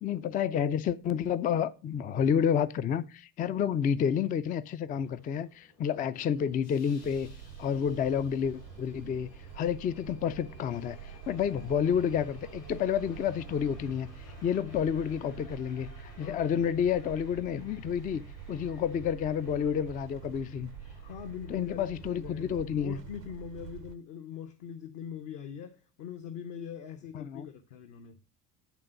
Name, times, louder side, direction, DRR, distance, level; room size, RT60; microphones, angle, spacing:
voice 1, 0.0-7.3 7.6-9.3 9.6-14.1 14.4-18.2 18.5-20.7 21.5-23.0 27.1-27.5, left 8 dB, 20° left, 0.4 m, -30 dB
Subway metro underground, 4.9-22.8, left 2 dB, 80° left, 5.2 m, -55 dB
sound 1, 7.0-23.9, right 8 dB, 75° right, 0.8 m, -47 dB
voice 2, 16.2-16.6 21.0-28.2, left 8 dB, 55° left, 1.0 m, -42 dB
9.6 x 3.6 x 6.6 m
figure-of-eight pair, 55°, 48 cm